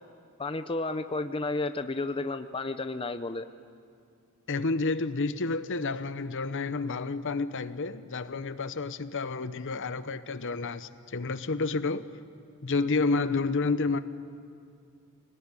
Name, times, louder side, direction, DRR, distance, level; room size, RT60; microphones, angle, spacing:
voice 1, 0.4-3.5, left 2 dB, 25° left, 0.6 m, -32 dB
voice 2, 4.5-12.1 12.6-14.0, left 3 dB, 55° left, 0.8 m, -30 dB
26.0 x 19.0 x 9.7 m
head